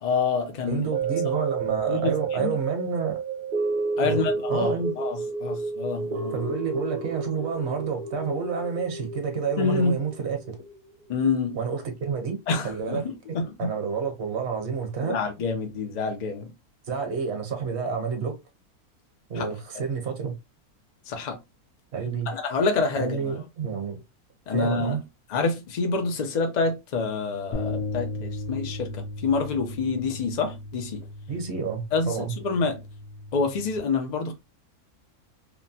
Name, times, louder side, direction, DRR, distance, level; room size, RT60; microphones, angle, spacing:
voice 1, 0.0-0.9 1.9-2.5 4.0-6.5 9.6-9.9 11.1-11.6 12.5-13.7 15.0-16.5 19.4-19.5 21.1-21.4 22.3-23.3 24.5-25.0 25.3-31.0 31.9-32.8 33.3-34.3, left 4 dB, 50° left, 0.5 m, -27 dB
voice 2, 0.7-3.2 4.0-5.0 6.3-10.5 11.5-12.4 12.6-15.2 16.9-18.4 19.3-20.3 21.9-22.3 22.9-24.0 24.5-25.0 31.3-32.3, right 6 dB, 50° right, 1.1 m, -29 dB
sound 1, 0.9-11.3 11.7-11.8, right 4 dB, 85° right, 0.4 m, -31 dB
sound 2, 27.5-33.8, left 2 dB, 65° left, 1.0 m, -36 dB
2.9 x 2.2 x 2.7 m
omnidirectional pair, 1.6 m